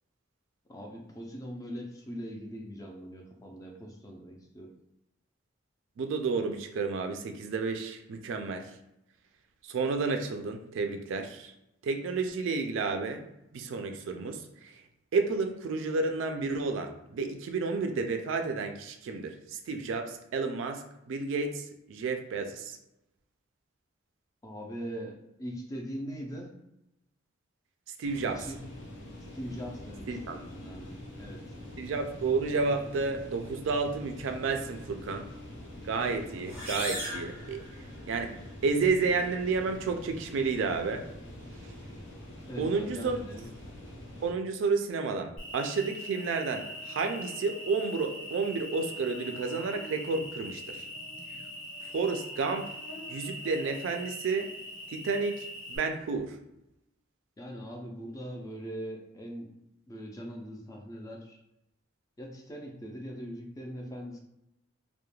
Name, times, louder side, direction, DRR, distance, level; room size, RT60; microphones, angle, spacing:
voice 1, 0.7-4.7 24.4-26.6 28.2-28.6 29.3-31.4 42.5-43.5 57.4-59.5 59.9-61.4 62.2-64.2, equal, 15° left, 1 dB, 0.3 m, -41 dB
voice 2, 6.0-8.7 9.6-11.5 11.8-13.2 13.5-14.7 15.1-22.8 28.0-28.4 30.1-30.4 31.8-35.3 35.8-37.7 38.1-38.3 38.6-41.0 42.6-43.2 44.2-50.9 51.9-52.7 53.1-54.5 54.9-56.4, right 4 dB, 65° right, 6 dB, 0.3 m, -31 dB
sound 1, 28.0-44.3, left 1 dB, 65° left, 0.7 m, -45 dB
sound 2, 36.4-38.3, equal, 10° right, 0.7 m, -38 dB
Cricket, 45.4-55.8, equal, 90° left, 1.0 m, -42 dB
2.3 x 2.1 x 3.0 m, 0.87 s
head